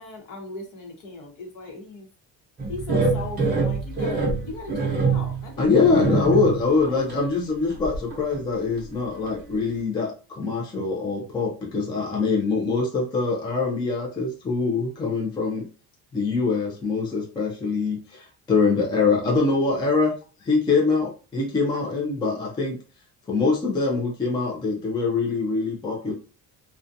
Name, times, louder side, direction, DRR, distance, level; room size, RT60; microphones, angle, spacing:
voice 1, 0.0-2.1 2.7-5.9 6.8-7.1, left 3 dB, 60° left, 2 dB, 0.9 m, -38 dB
sound 1, 2.6-6.7 7.1-7.2 7.7-8.4 8.8-8.9 9.3-9.4, right 3 dB, 25° right, 0.7 m, -25 dB
voice 2, 5.6-15.7 16.1-20.1 20.4-22.8 23.3-26.1, left 4 dB, 15° left, -2 dB, 0.3 m, -24 dB
2.4 x 2.2 x 2.6 m, 0.36 s
cardioid pair, 175°, 37 cm